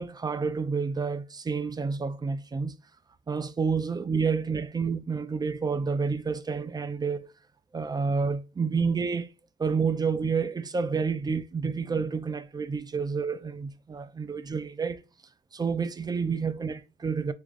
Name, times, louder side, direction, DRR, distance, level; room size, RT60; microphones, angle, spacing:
voice 1, 0.0-2.8 3.3-7.3 7.7-9.3 9.6-15.0 15.5-17.3, right 5 dB, 20° right, 0.4 m, -29 dB
3.0 x 2.6 x 3.6 m
cardioid pair, 90°, 20 cm